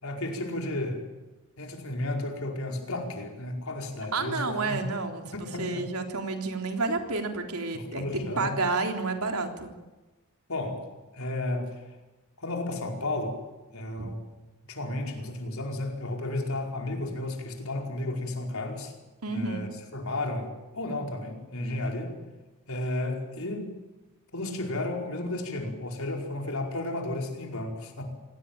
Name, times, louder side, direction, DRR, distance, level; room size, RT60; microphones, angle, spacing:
voice 1, 0.0-1.0 1.6-4.8 5.4-5.9 7.7-8.6 10.5-10.8 11.1-11.8 12.4-13.4 13.7-14.2 14.7-18.9 19.3-22.1 22.7-23.7 24.3-28.0, left 2 dB, 70° left, 2 dB, 4.9 m, -33 dB
voice 2, 4.1-9.7 14.0-14.1 19.2-19.7, right 3 dB, 85° right, 4 dB, 3.6 m, -30 dB
26.5 x 18.5 x 9.0 m, 1.1 s
head